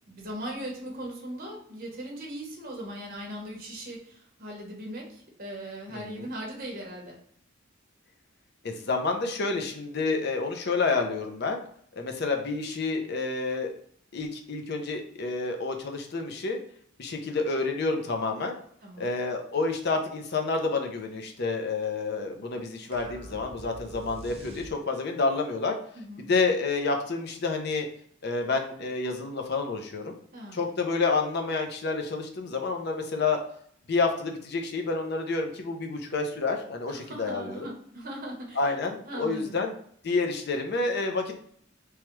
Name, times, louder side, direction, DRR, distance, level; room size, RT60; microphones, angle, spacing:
voice 1, 0.1-7.2 18.8-19.1 25.9-26.3 30.3-30.6 36.9-38.7 39.1-39.6, right 1 dB, 45° right, -2 dB, 0.9 m, -39 dB
voice 2, 5.9-6.3 8.6-11.6 12.0-13.7 14.1-16.6 17.0-18.5 19.0-25.8 26.3-27.9 28.2-30.1 30.5-33.4 33.9-37.7 38.6-39.7 40.0-41.3, left 3 dB, 55° left, 4 dB, 0.5 m, -29 dB
sound 1, 22.9-25.2, right 1 dB, 30° right, 0.4 m, -45 dB
3.1 x 2.3 x 3.0 m, 0.62 s
head